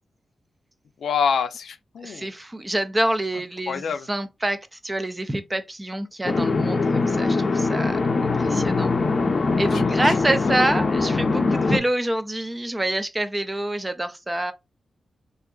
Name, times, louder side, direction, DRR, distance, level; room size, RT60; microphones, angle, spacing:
voice 1, 1.0-2.3 3.7-4.1 9.7-10.3, left 6 dB, 90° left, 0.5 m, -27 dB
voice 2, 2.0-8.9 9.6-14.5, right 1 dB, 15° right, 0.4 m, -27 dB
sound 1, 6.2-11.8, left 3 dB, 40° left, 0.5 m, -22 dB
3.8 x 2.5 x 2.3 m
wide cardioid pair, 165°, 0 cm